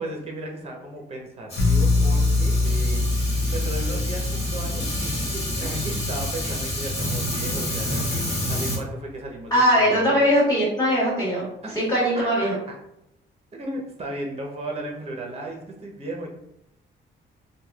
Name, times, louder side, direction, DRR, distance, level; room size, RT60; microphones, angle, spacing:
voice 1, 0.0-3.1 3.5-10.2 11.6-11.8 12.1-12.8 13.5-16.3, right 1 dB, 30° right, 0 dB, 0.7 m, -35 dB
Fire, 1.5-8.8, left 1 dB, 35° left, 1.3 m, -29 dB
sound 1, 1.6-7.3, left 2 dB, 60° left, 0.6 m, -25 dB
voice 2, 9.5-11.5 11.7-12.6, equal, 15° left, -10 dB, 1.2 m, -20 dB
3.2 x 2.3 x 2.3 m, 0.83 s
cardioid pair, 90°, 20 cm